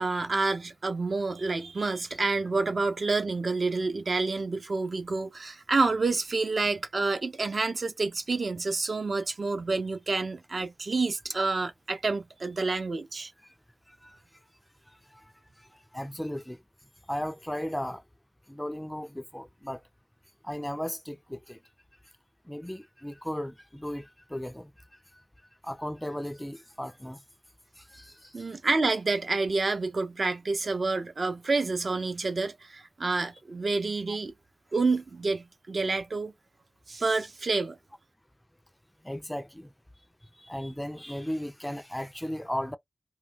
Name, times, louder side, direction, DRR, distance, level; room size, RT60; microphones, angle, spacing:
voice 1, 0.0-13.3 28.3-34.3 34.7-36.3 36.9-37.8, right 3 dB, 60° right, 0.6 m, -28 dB
voice 2, 13.9-14.5 14.9-18.0 18.5-19.9 20.4-21.6 22.4-25.2 25.6-27.2 27.8-28.6 34.1-34.2 39.0-39.7 40.2-42.8, equal, 10° left, 0.3 m, -37 dB
2.2 x 2.2 x 3.4 m
wide cardioid pair, 75°, 0 cm